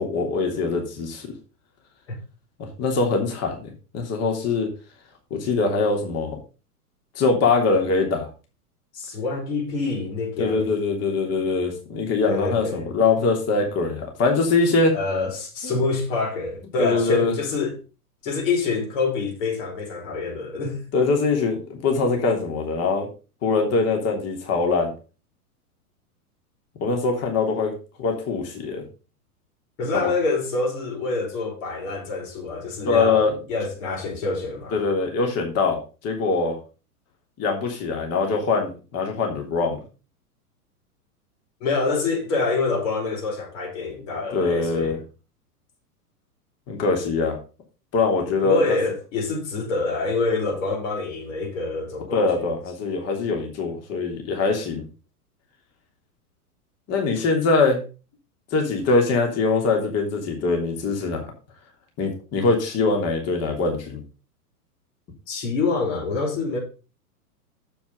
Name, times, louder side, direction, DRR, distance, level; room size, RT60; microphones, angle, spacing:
voice 1, 0.0-1.3 2.6-4.7 5.3-6.4 7.1-8.3 10.4-15.0 15.6-15.8 16.8-17.3 20.9-23.1 23.4-24.9 26.8-27.7 28.0-28.8 29.9-30.1 32.8-33.3 34.7-36.6 37.4-39.8 44.3-45.0 46.7-47.4 47.9-48.8 52.1-54.8 56.9-57.8 58.5-61.3 62.0-64.0, left 4 dB, 35° left, 3.2 m, -23 dB
voice 2, 8.9-10.7 12.3-12.9 14.9-17.7 18.2-20.8 29.8-34.8 41.6-45.0 48.4-52.5 65.3-66.6, left 3 dB, 55° left, 5.0 m, -26 dB
7.6 x 6.9 x 5.4 m
hypercardioid pair, 105°, 46 cm